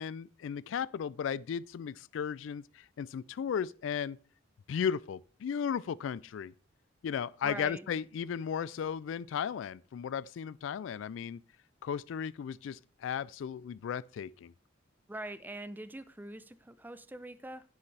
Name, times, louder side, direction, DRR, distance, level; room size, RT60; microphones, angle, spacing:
voice 1, 0.0-4.2 4.7-6.5 7.0-11.4 11.8-14.5, left 7 dB, 65° left, 0.3 m, -35 dB
voice 2, 7.4-7.9 15.1-17.6, right 1 dB, 10° right, 0.5 m, -43 dB
10.5 x 8.2 x 3.3 m
head